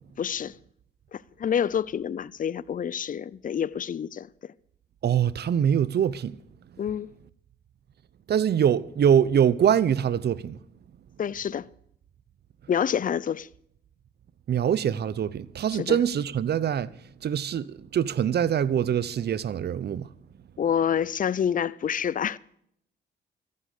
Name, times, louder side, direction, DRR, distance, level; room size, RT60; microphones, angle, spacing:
voice 1, 0.2-0.6 1.1-4.5 6.8-7.1 11.2-11.7 12.7-13.5 15.7-16.0 20.6-22.4, left 8 dB, 45° left, 0.6 m, -28 dB
voice 2, 5.0-6.3 8.3-10.6 14.5-16.9 17.2-20.1, right 9 dB, 60° right, 0.8 m, -24 dB
14.0 x 11.0 x 6.6 m
supercardioid pair, 55°, 19 cm